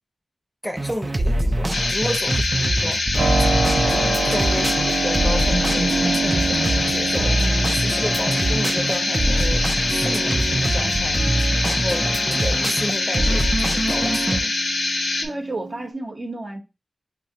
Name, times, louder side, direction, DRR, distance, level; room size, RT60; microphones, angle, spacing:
voice 1, 0.6-3.0 3.8-11.2 11.6-14.5, equal, 5° left, 0.6 m, -32 dB
sound 1, 0.8-14.4, right 1 dB, 35° right, 0.3 m, -24 dB
sound 2, 1.7-15.3, left 3 dB, 80° left, 0.4 m, -24 dB
Keyboard (musical), 3.2-15.9, right 3 dB, 90° right, 0.5 m, -28 dB
voice 2, 15.2-16.6, right 2 dB, 50° right, 0.7 m, -31 dB
4.8 x 2.1 x 2.7 m
cardioid pair, 40°, 0 cm